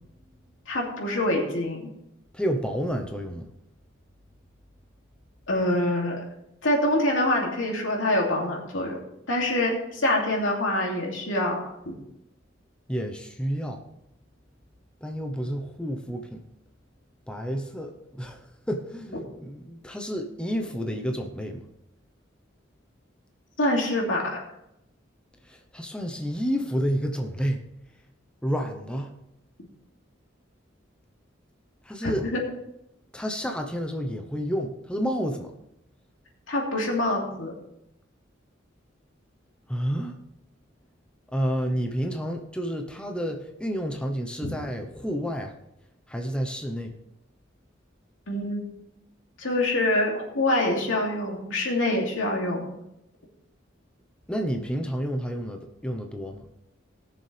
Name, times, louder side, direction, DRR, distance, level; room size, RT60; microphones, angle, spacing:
voice 1, 0.7-1.9 5.5-6.2 6.6-9.0 9.3-12.0 23.6-24.4 32.0-32.4 36.5-37.5 44.4-44.5 48.3-48.6 49.4-52.6, left 1 dB, 85° left, -1 dB, 2.8 m, -25 dB
voice 2, 2.3-3.4 12.9-13.8 15.0-16.4 17.3-18.4 18.7-21.6 25.5-27.6 28.4-29.1 31.9-32.2 33.1-35.5 39.7-40.1 41.3-45.5 46.1-46.9 54.3-56.4, equal, 5° left, 3 dB, 0.9 m, -30 dB
19.0 x 6.9 x 3.4 m, 0.84 s
head